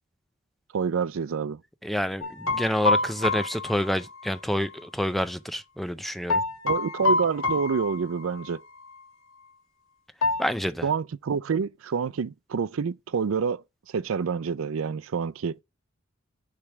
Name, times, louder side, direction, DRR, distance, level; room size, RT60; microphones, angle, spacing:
voice 1, 0.7-1.6 6.6-8.6 10.8-13.6 13.9-15.6, right 6 dB, 80° right, 0.4 m, -27 dB
voice 2, 1.8-6.4 10.4-10.8, equal, ahead, 0.4 m, -28 dB
sound 1, 2.2-4.8 6.3-8.6 8.8-9.0 10.2-10.5, left 2 dB, 85° left, 1.2 m, -27 dB
6.7 x 3.3 x 5.8 m
head